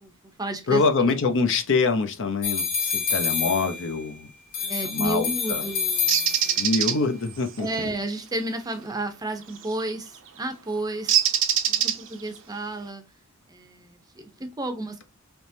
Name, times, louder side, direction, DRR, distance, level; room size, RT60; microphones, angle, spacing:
voice 1, 0.0-1.1 3.2-3.5 4.6-6.6 7.6-11.2 11.7-13.0 13.5-15.0, right 2 dB, 15° right, 0.6 m, -32 dB
voice 2, 0.7-4.3 4.8-5.6 6.6-7.7, left 4 dB, 60° left, 0.6 m, -25 dB
sound 1, 2.4-4.1 4.5-6.7, left 6 dB, 80° left, 1.8 m, -28 dB
Bird, 6.1-6.9 9.6-9.8 11.1-12.3, right 9 dB, 60° right, 0.7 m, -22 dB
3.5 x 3.0 x 2.7 m
head